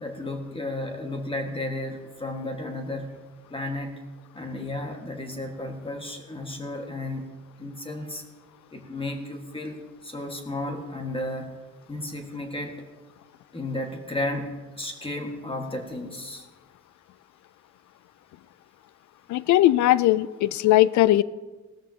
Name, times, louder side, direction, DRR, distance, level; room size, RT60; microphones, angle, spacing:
voice 1, 0.0-3.1 3.5-4.0 4.3-7.3 7.6-8.2 8.7-11.5 11.9-12.8 13.5-16.4, left 1 dB, 20° left, 3 dB, 1.6 m, -33 dB
voice 2, 19.3-21.2, left 15 dB, 70° left, 19 dB, 0.4 m, -19 dB
17.0 x 13.5 x 2.8 m, 1.3 s
cardioid pair, 90°, 30 cm